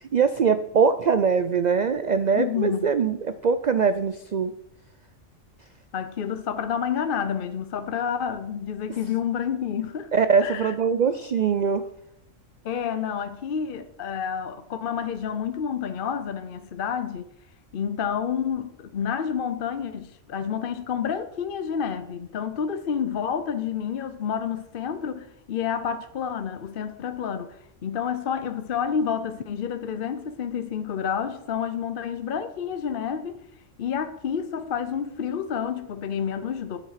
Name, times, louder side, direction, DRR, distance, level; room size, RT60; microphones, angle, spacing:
voice 1, 0.0-4.5 10.1-11.8, right 6 dB, 90° right, 0.3 m, -22 dB
voice 2, 2.3-2.9 5.9-10.1 10.4-10.7 12.6-17.3 17.7-33.4 33.8-36.8, left 7 dB, 50° left, 0.8 m, -29 dB
9.8 x 7.5 x 5.8 m
omnidirectional pair, 1.4 m